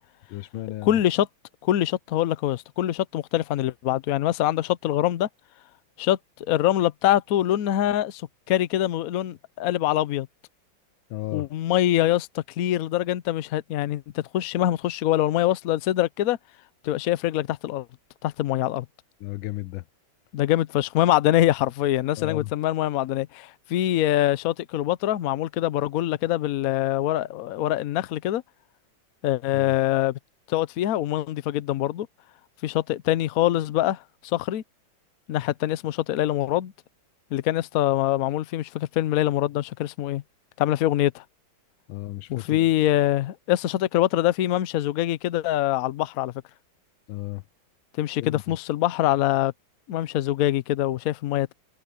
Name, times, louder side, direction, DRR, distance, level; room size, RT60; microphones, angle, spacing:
voice 1, 0.3-1.0 11.1-11.5 19.2-19.8 22.2-22.5 41.9-42.7 47.1-47.4 48.2-48.4, left 16 dB, 90° left, 1.5 m, -34 dB
voice 2, 0.8-1.3 1.6-5.3 6.0-6.2 6.5-8.2 8.5-10.3 11.3-16.4 16.8-17.9 18.2-18.8 20.3-28.4 29.2-30.2 30.5-32.1 32.6-34.0 34.3-34.6 35.3-36.7 37.3-40.2 40.6-41.2 42.3-46.3 48.0-49.5 49.9-51.5, left 13 dB, 65° left, 0.9 m, -24 dB
omnidirectional pair, 2.1 m